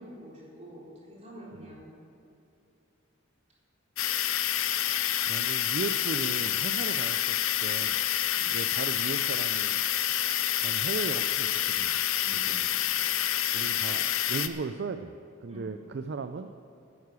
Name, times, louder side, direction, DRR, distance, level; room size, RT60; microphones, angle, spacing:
voice 1, 0.0-1.8 8.3-8.6 12.2-12.5 15.5-15.7, equal, 30° right, -6 dB, 3.7 m, -47 dB
sound 1, 4.0-14.5, left 11 dB, 70° left, 0.6 m, -28 dB
voice 2, 5.2-8.0 8.5-9.8 10.6-12.0 12.5-12.7 13.5-15.1 15.4-16.5, right 4 dB, 50° right, 9 dB, 0.4 m, -37 dB
10.5 x 9.5 x 8.2 m, 2.8 s
head